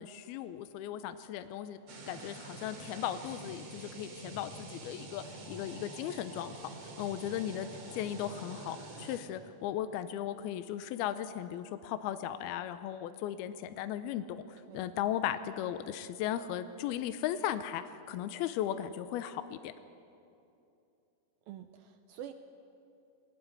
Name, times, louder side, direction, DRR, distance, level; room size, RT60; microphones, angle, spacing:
voice 1, 0.0-1.8 2.1-5.2 5.5-6.7 7.0-7.7 7.9-19.7, left 11 dB, 80° left, 11 dB, 2.3 m, -36 dB
sound 1, 1.9-9.2, right 2 dB, 40° right, 2.9 m, -47 dB
voice 2, 21.5-22.3, right 11 dB, 85° right, 8 dB, 2.1 m, -46 dB
22.5 x 20.0 x 9.3 m, 2.7 s
omnidirectional pair, 5.2 m